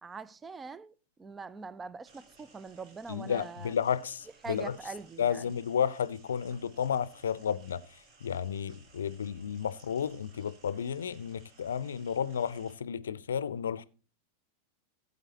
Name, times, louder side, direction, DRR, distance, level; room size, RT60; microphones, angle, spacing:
voice 1, 0.0-3.7 4.4-5.5, right 4 dB, 15° right, 0.5 m, -43 dB
sound 1, 2.0-12.8, right 3 dB, 40° right, 2.4 m, -60 dB
voice 2, 3.1-4.7 5.2-7.8 8.2-13.8, left 8 dB, 65° left, 0.6 m, -32 dB
17.5 x 8.2 x 2.9 m
figure-of-eight pair, 90°, 0 cm